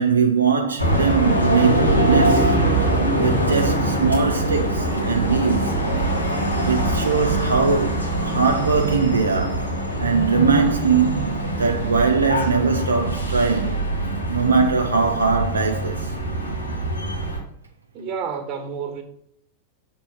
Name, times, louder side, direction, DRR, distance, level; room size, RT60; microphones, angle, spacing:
voice 1, 0.0-2.6 3.1-5.8 6.6-9.7 10.0-13.9 14.3-16.2, right 5 dB, 75° right, 0.6 m, -21 dB
sound 1, 0.8-17.4, right 1 dB, 90° left, 1.8 m, -23 dB
voice 2, 17.9-19.0, right 6 dB, 30° right, 1.4 m, -29 dB
6.9 x 3.8 x 5.8 m
figure-of-eight pair, 90°, 0 cm